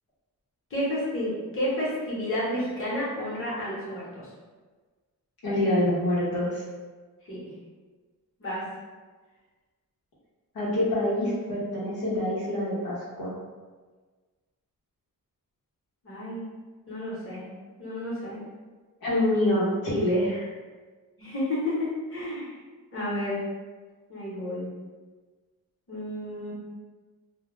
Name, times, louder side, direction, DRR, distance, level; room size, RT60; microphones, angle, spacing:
voice 1, 0.7-4.3 7.2-7.5 8.4-8.6 16.0-16.5 16.9-17.5 17.8-18.4 21.2-22.5 22.9-23.4 24.1-24.7 25.9-26.5, left 1 dB, 35° left, -8 dB, 0.9 m, -31 dB
voice 2, 5.4-6.6 10.5-13.3 19.0-20.5, left 1 dB, 85° left, -8 dB, 0.9 m, -26 dB
2.2 x 2.2 x 3.1 m, 1.4 s
wide cardioid pair, 145°, 35 cm